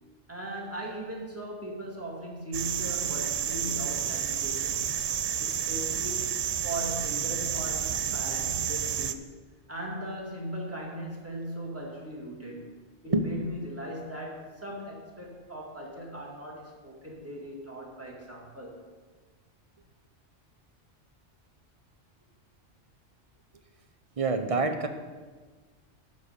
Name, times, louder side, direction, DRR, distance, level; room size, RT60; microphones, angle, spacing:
voice 1, 0.3-4.9 5.4-9.3 9.7-18.8, right 1 dB, 10° right, -3 dB, 2.1 m, -39 dB
sound 1, 2.5-9.1, right 8 dB, 80° right, 0.3 m, -30 dB
voice 2, 13.1-13.4 24.2-24.9, right 3 dB, 35° right, 7 dB, 0.8 m, -26 dB
12.0 x 4.3 x 8.1 m, 1.4 s
omnidirectional pair, 1.2 m